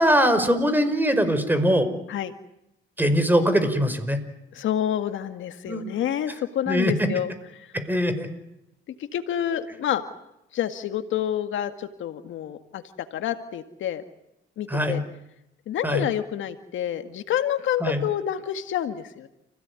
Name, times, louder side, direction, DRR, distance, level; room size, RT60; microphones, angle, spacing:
voice 1, 0.0-1.9 3.0-4.2 5.7-5.8 6.7-7.1 7.7-8.3 14.7-15.0 15.8-16.1 17.8-18.0, equal, 10° right, 10 dB, 5.3 m, -22 dB
voice 2, 4.5-7.7 9.1-10.0 10.5-12.8 13.1-14.0 14.6-15.0 15.7-19.3, left 10 dB, 75° left, 9 dB, 2.0 m, -28 dB
30.0 x 17.0 x 9.8 m, 0.85 s
cardioid pair, 90°, 20 cm